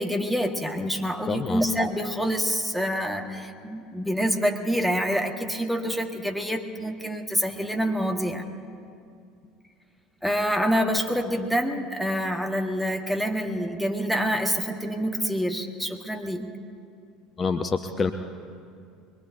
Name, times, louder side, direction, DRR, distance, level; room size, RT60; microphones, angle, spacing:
voice 1, 0.0-8.5 10.2-16.4, equal, ahead, 2 dB, 1.5 m, -27 dB
voice 2, 1.3-1.6 17.4-18.1, left 4 dB, 30° left, 7 dB, 0.7 m, -26 dB
23.0 x 21.5 x 2.7 m, 2.3 s
figure-of-eight pair, 65°, 0 cm